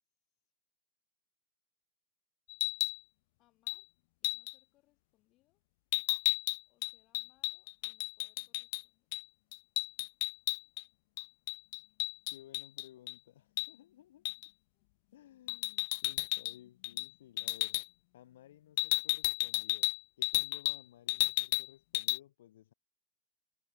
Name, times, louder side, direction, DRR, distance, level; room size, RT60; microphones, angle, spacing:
sound 1, 2.5-3.0 3.7-3.8 4.2-4.5 5.9-8.8 9.1-9.2 9.5-10.8 11.2-13.1 13.6-13.7 14.2-14.5 15.5-16.6 16.8-17.1 17.4-17.8 18.8-20.8 21.1-21.7 21.9-22.2, left 24 dB, 60° left, 0.4 m, -33 dB
voice 1, 3.4-3.9 4.2-5.6 6.7-9.1 14.1-14.2 14.7-14.9, left 17 dB, 45° left, 5.3 m, -74 dB
voice 2, 12.3-14.3 15.1-17.8 18.1-22.7, left 12 dB, 80° left, 3.9 m, -58 dB
supercardioid pair, 125°, 0 cm